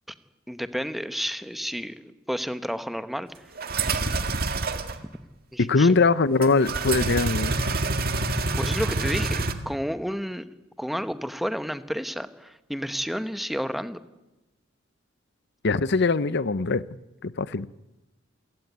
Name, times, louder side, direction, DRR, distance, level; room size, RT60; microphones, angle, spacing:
voice 1, 0.5-3.5 5.5-5.9 8.6-10.5 10.8-14.0, equal, ahead, 1.1 m, -31 dB
sound 1, 3.6-5.0 6.4-9.5, right 3 dB, 50° right, 1.9 m, -26 dB
voice 2, 5.7-7.6 15.6-16.8 17.2-17.7, left 4 dB, 55° left, 0.8 m, -22 dB
27.5 x 17.0 x 9.4 m
head